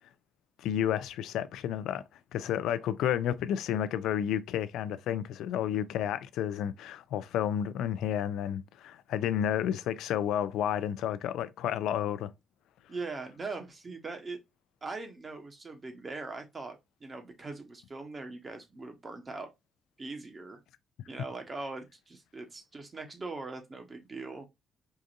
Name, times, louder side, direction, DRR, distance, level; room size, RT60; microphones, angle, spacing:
voice 1, 0.6-2.0 2.3-12.3, left 10 dB, 85° left, 0.4 m, -31 dB
voice 2, 12.9-14.4 14.8-19.5 20.0-20.6 21.1-24.5, right 3 dB, 30° right, 1.1 m, -41 dB
4.7 x 2.6 x 2.5 m
cardioid pair, 90°, 0 cm